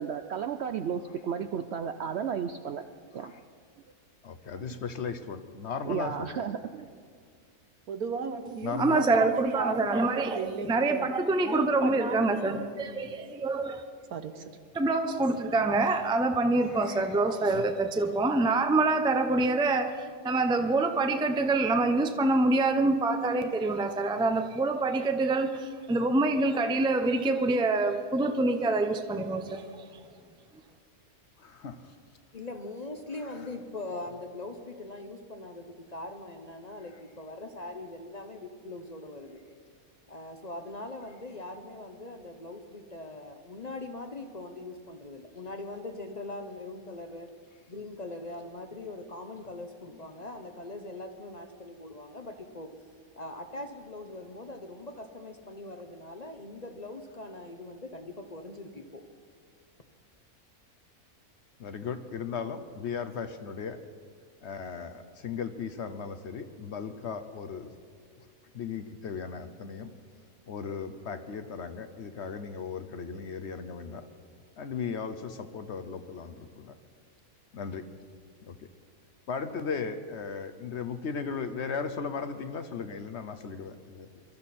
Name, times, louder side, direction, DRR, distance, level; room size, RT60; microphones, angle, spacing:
voice 1, 0.0-2.8 3.1-3.3 4.7-4.8 5.8-6.9, right 7 dB, 65° right, 8 dB, 0.6 m, -33 dB
voice 2, 4.2-6.4 8.6-9.0 16.7-17.1 17.5-17.6 31.4-31.9 61.6-63.8 64.4-67.7 68.2-68.3 68.5-69.9 70.5-74.1 74.6-76.7 77.5-77.8 78.4-78.6 79.3-84.1, left 6 dB, 55° left, 9 dB, 0.9 m, -37 dB
voice 3, 7.9-11.1 11.4-12.2 14.1-14.6, right 5 dB, 85° right, 8 dB, 1.5 m, -35 dB
voice 4, 8.8-13.8 14.7-29.6, right 2 dB, 5° right, 7 dB, 0.4 m, -26 dB
voice 5, 32.3-39.4 40.1-47.3 47.7-52.7 53.2-59.0, left 2 dB, 35° left, 6 dB, 0.7 m, -41 dB
22.5 x 13.0 x 4.2 m, 2.2 s
omnidirectional pair, 1.5 m